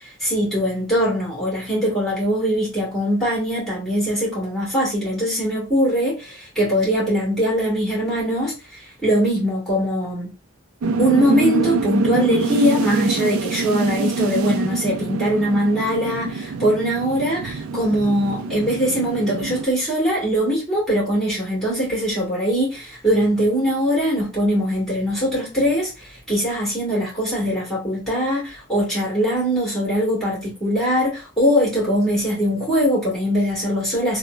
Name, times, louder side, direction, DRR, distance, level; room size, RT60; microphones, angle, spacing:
voice 1, 0.2-8.5 9.0-10.3 11.0-34.2, equal, ahead, 1.6 m, -21 dB
sound 1, 10.8-19.7, right 3 dB, 80° right, 0.3 m, -25 dB
3.0 x 2.1 x 2.3 m
head